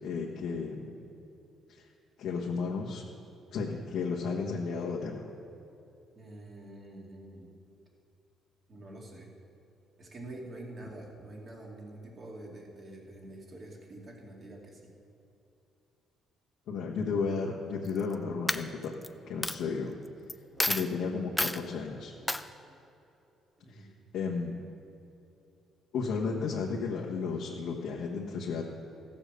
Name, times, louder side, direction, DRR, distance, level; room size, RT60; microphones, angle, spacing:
voice 1, 0.0-1.0 1.7-1.8 2.2-3.0 3.5-5.3 16.7-19.0 19.3-19.9 20.6-22.1 23.7-23.9 24.1-24.5 25.9-28.6, left 5 dB, 75° left, -3 dB, 1.2 m, -33 dB
voice 2, 6.1-7.5 8.7-9.3 10.0-14.9 23.6-23.9, right 1 dB, 35° right, -1 dB, 2.2 m, -46 dB
Coin (dropping), 17.8-18.1 18.5-19.1 19.4-19.6 20.3-20.4 20.6-20.9 21.4-21.6 22.3-22.4, left 1 dB, 5° left, 0.4 m, -29 dB
15.0 x 7.2 x 6.6 m, 2.8 s
cardioid pair, 120°, 0 cm